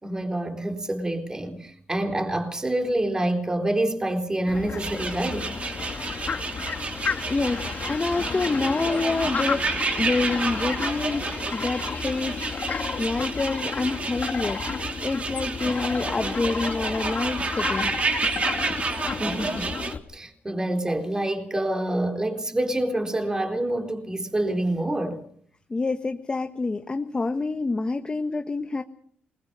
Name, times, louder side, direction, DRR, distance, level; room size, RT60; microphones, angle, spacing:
voice 1, 0.0-5.5 19.2-19.7 20.1-25.2, right 1 dB, 20° right, 4.0 m, -27 dB
Fowl, 4.5-20.0, left 5 dB, 50° left, 2.0 m, -32 dB
sound 1, 4.8-19.9, right 4 dB, 40° right, 3.2 m, -30 dB
voice 2, 7.3-9.6 10.0-12.4 13.0-17.9 18.2-18.3 25.7-28.8, left 3 dB, 25° left, 1.3 m, -27 dB
26.5 x 21.0 x 5.5 m
cardioid pair, 100°, 4 cm